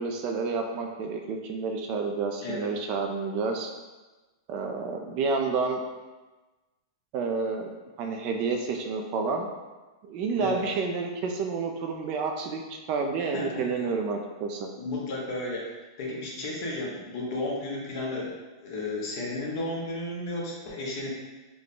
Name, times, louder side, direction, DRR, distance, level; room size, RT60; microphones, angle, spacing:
voice 1, 0.0-3.7 4.5-5.8 7.1-9.5 10.1-14.7, right 4 dB, 35° right, 3 dB, 0.4 m, -30 dB
voice 2, 13.2-13.7 14.8-15.7 16.0-18.3 18.6-21.1, left 2 dB, 50° left, -3 dB, 1.0 m, -33 dB
3.6 x 2.2 x 3.8 m, 1.2 s
supercardioid pair, 155°, 2 cm